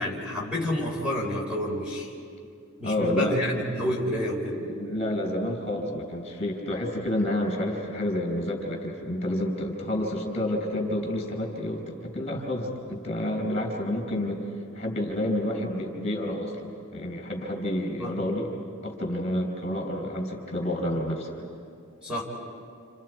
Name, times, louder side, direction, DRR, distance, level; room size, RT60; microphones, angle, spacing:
voice 1, 0.0-2.1 2.8-4.6 18.0-18.2 22.0-22.2, equal, 5° right, -3 dB, 3.9 m, -29 dB
voice 2, 2.8-3.4 4.6-14.5 14.7-18.5 18.8-21.3, left 1 dB, 30° left, 1 dB, 4.7 m, -29 dB
30.0 x 29.0 x 4.8 m, 2.4 s
head